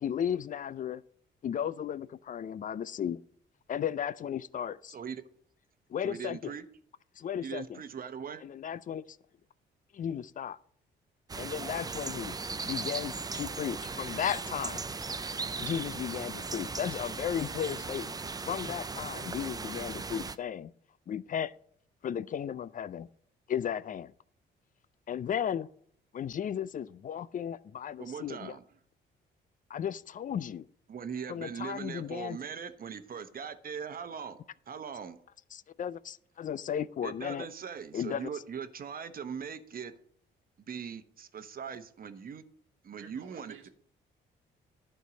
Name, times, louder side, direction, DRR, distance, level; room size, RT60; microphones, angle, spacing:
voice 1, 0.0-1.0 1.4-3.2 3.7-5.0 5.9-6.5 7.2-7.8 8.4-9.2 9.9-10.6 11.4-12.4 12.6-14.9 15.6-18.2 18.5-20.7 21.1-21.5 22.0-23.1 23.5-24.1 25.1-25.7 26.1-28.5 29.7-30.7 31.3-32.4 35.5-37.5 37.9-38.3, left 9 dB, 45° left, 0.4 m, -35 dB
voice 2, 4.9-5.2 6.0-6.6 7.4-8.4 28.0-28.6 30.9-34.4 34.7-35.2 37.0-39.9 40.7-42.4 42.8-43.7, right 7 dB, 45° right, 1.0 m, -40 dB
sound 1, 11.3-20.4, right 4 dB, 20° right, 0.5 m, -37 dB
voice 3, 43.0-43.7, right 7 dB, 85° right, 1.4 m, -53 dB
11.0 x 4.6 x 6.2 m
cardioid pair, 90°, 20 cm